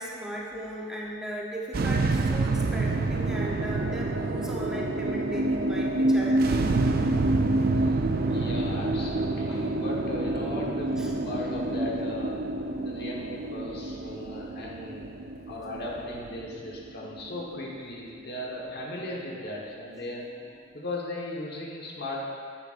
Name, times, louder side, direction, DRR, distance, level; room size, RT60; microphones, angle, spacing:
voice 1, 0.0-6.7 9.5-9.7 11.0-11.1, right 1 dB, 5° right, -4 dB, 0.7 m, -37 dB
sound 1, 1.7-18.1, right 2 dB, 50° right, 0.4 m, -27 dB
voice 2, 8.3-12.5 12.8-15.1 15.5-20.3 20.7-22.3, left 1 dB, 50° left, -2 dB, 1.2 m, -37 dB
10.0 x 7.9 x 2.5 m, 2.2 s
head